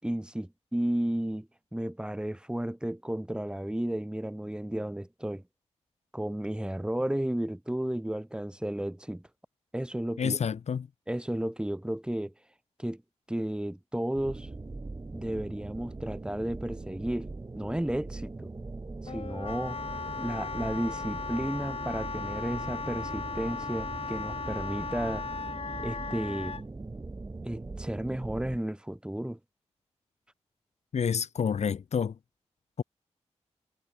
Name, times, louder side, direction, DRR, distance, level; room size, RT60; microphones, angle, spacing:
voice 1, 0.0-5.4 6.1-9.2 9.7-10.4 11.1-12.3 12.8-13.0 13.3-14.5 15.1-17.3 17.6-18.5 19.0-19.8 20.2-25.2 25.8-26.6 27.4-29.4, right 1 dB, 10° right, 7.2 m, -33 dB
voice 2, 10.2-10.9 30.9-32.1 32.8-32.9, left 7 dB, 75° left, 1.3 m, -28 dB
sound 1, 14.1-28.6, right 3 dB, 30° right, 3.0 m, -41 dB
Wind instrument woodwind instrument, 19.1-26.6, left 5 dB, 55° left, 4.2 m, -37 dB
wide cardioid pair, 110°, 11 cm